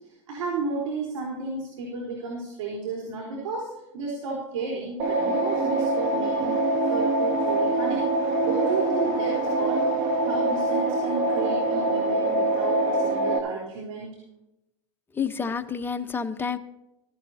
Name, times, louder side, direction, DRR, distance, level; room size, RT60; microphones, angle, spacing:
voice 1, 0.3-6.6 6.9-8.0 8.4-9.8 10.2-14.1, right 3 dB, 80° right, -1 dB, 3.9 m, -32 dB
sound 1, 5.0-13.4, right 2 dB, 50° right, 2.6 m, -24 dB
voice 2, 15.2-16.6, left 6 dB, 15° left, 6 dB, 0.9 m, -29 dB
16.0 x 14.5 x 2.8 m, 0.91 s
supercardioid pair, 120°, 16 cm